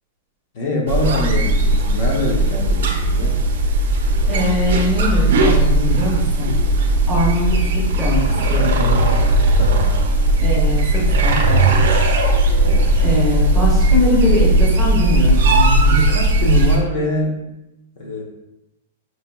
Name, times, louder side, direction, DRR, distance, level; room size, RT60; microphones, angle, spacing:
voice 1, 0.5-3.4 9.6-9.9 12.6-13.0 15.9-17.5 18.0-18.2, left 1 dB, 45° left, -1 dB, 0.8 m, -24 dB
sound 1, 0.9-16.8, right 1 dB, 75° right, 0.7 m, -16 dB
voice 2, 4.2-6.5 7.1-9.0 10.4-11.8 13.0-16.0, equal, 5° left, -6 dB, 0.9 m, -22 dB
5.5 x 2.8 x 2.2 m, 0.91 s
supercardioid pair, 170°, 0 cm